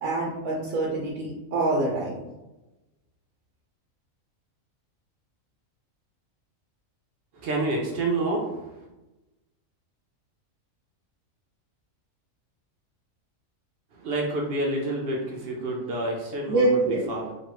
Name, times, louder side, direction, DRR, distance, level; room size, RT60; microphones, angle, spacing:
voice 1, 0.0-2.3 16.5-17.1, right 2 dB, 90° right, -3 dB, 1.1 m, -25 dB
voice 2, 7.3-8.9 13.9-17.3, right 2 dB, 65° right, 0 dB, 0.6 m, -29 dB
3.0 x 2.1 x 3.0 m, 1.0 s
omnidirectional pair, 1.4 m